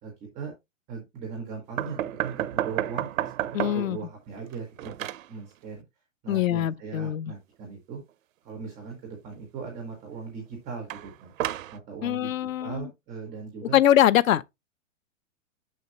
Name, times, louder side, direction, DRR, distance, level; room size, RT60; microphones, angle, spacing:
voice 1, 0.0-0.5 0.9-4.9 5.3-5.8 6.2-8.0 8.4-11.3 11.7-12.3 12.6-13.8, right 5 dB, 5° right, 0.3 m, -39 dB
sound 1, 1.8-4.0 4.4-5.3 10.9-11.8, right 13 dB, 85° right, 0.6 m, -31 dB
voice 2, 3.5-4.0 6.3-7.3 12.0-12.9 13.7-14.4, left 11 dB, 85° left, 0.6 m, -23 dB
6.4 x 5.7 x 2.8 m
hypercardioid pair, 160°, 39 cm